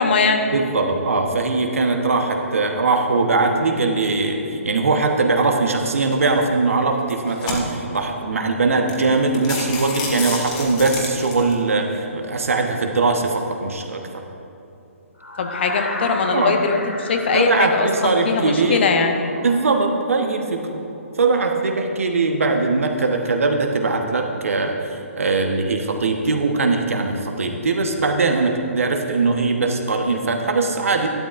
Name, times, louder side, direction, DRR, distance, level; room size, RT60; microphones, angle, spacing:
voice 1, 0.0-0.4 15.4-19.2, left 4 dB, 50° left, 5 dB, 1.0 m, -20 dB
voice 2, 0.5-14.0 16.3-16.6 17.3-18.8 19.4-20.8 21.2-24.9 25.2-31.1, right 3 dB, 70° right, 3 dB, 1.2 m, -21 dB
sound 1, 6.1-6.4 7.0-8.0 8.5-8.6 8.9-9.0 9.3-11.5, left 3 dB, 30° left, 1.8 m, -29 dB
sound 2, 15.2-21.1, left 2 dB, 85° left, 1.8 m, -34 dB
12.5 x 12.0 x 2.6 m, 2.9 s
figure-of-eight pair, 140°, 8 cm